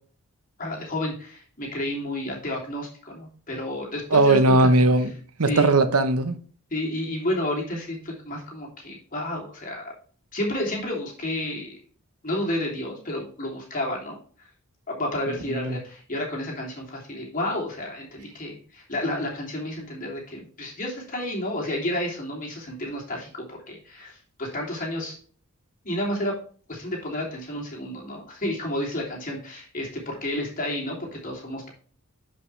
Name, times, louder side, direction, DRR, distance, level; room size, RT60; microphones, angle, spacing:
voice 1, 0.6-4.7 5.4-5.7 6.7-9.9 10.3-11.8 12.2-14.2 14.9-25.2 25.8-26.4 26.7-31.7, left 1 dB, 40° left, 3.1 m, -31 dB
voice 2, 4.1-5.1 5.4-6.3 15.5-15.8, right 2 dB, 85° right, 1.0 m, -19 dB
11.0 x 5.4 x 3.3 m
head